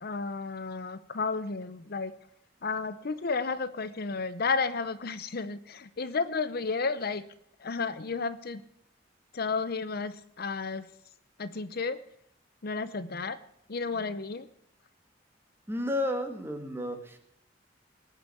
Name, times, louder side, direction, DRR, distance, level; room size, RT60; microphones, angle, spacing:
voice 1, 0.0-2.1 2.6-7.2 7.6-8.6 9.3-10.8 11.4-12.0 12.6-13.4 13.7-14.5, left 4 dB, 55° left, 13 dB, 0.7 m, -32 dB
voice 2, 15.7-17.2, left 1 dB, 10° right, 5 dB, 2.0 m, -32 dB
19.5 x 6.8 x 8.3 m, 0.72 s
head